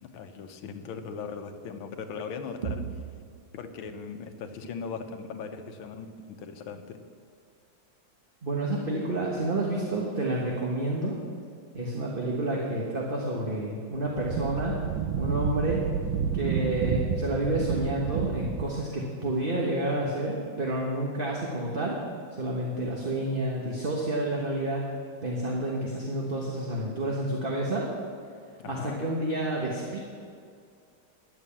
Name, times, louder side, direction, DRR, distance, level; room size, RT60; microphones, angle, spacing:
voice 1, 0.0-2.8 3.5-7.0 28.6-29.0, left 5 dB, 75° left, 7 dB, 1.7 m, -39 dB
voice 2, 8.4-11.2 11.7-14.8 15.2-15.8 16.3-22.0 22.3-24.8 25.2-27.9 28.7-30.0, right 1 dB, 30° right, -2 dB, 1.2 m, -29 dB
Wind, 13.9-18.8, right 7 dB, 75° right, 1.4 m, -30 dB
11.0 x 7.6 x 8.6 m, 2.3 s
omnidirectional pair, 2.2 m